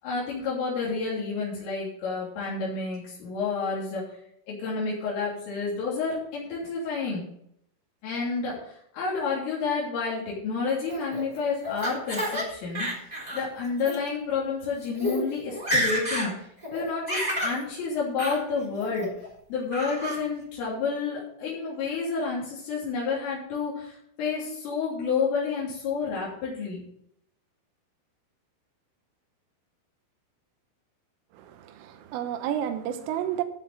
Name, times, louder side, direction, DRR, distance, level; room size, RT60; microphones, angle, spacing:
voice 1, 0.0-4.0 4.5-7.2 8.0-12.9 13.3-19.1 19.5-26.8, left 4 dB, 75° left, -6 dB, 5.7 m, -30 dB
Laughter, 10.9-12.4 12.7-13.4 13.8-14.0 14.6-14.7 14.9-15.2 15.5-16.3 16.6-17.6 18.2-18.4 18.8-19.3 19.7-20.2, equal, 10° right, 3.2 m, -29 dB
voice 2, 31.3-33.4, right 10 dB, 80° right, 8 dB, 3.5 m, -31 dB
15.5 x 6.1 x 5.5 m, 0.71 s
omnidirectional pair, 5.9 m